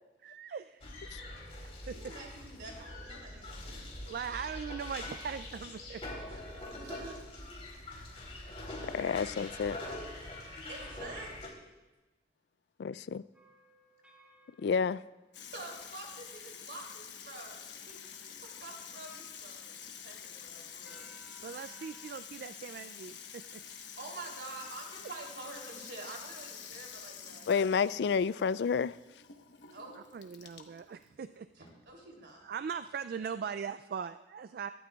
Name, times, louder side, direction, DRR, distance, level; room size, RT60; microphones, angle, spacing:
voice 1, 0.2-0.8 1.9-2.0 4.1-6.0 21.4-23.6 30.0-31.5 32.4-34.7, right 6 dB, 55° right, 0.3 m, -40 dB
sound 1, 0.8-11.5, left 1 dB, 35° left, 3.4 m, -44 dB
voice 2, 1.8-4.0 6.3-7.2 10.6-11.4 15.5-21.1 23.7-27.5 29.7-30.0 31.5-32.4, right 2 dB, 80° right, 3.2 m, -47 dB
voice 3, 8.9-9.8 12.8-13.2 14.6-15.0 27.5-28.9, left 6 dB, 70° left, 0.3 m, -29 dB
sound 2, 13.3-16.2 20.8-22.1, right 1 dB, 5° right, 2.4 m, -60 dB
Water tap faucet / Sink (filling or washing), 15.3-32.8, left 8 dB, 85° left, 1.2 m, -48 dB
23.5 x 12.0 x 2.4 m
head